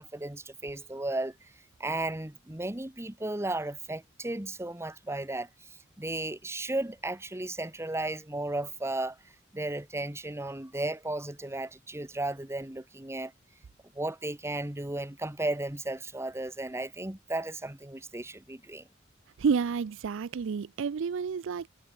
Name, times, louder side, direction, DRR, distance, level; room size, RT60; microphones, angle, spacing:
voice 1, 0.0-1.3 1.8-5.5 6.0-9.2 9.5-13.3 13.9-18.9, right 2 dB, 15° right, 1.4 m, -34 dB
voice 2, 19.4-21.7, right 6 dB, 65° right, 0.4 m, -29 dB
head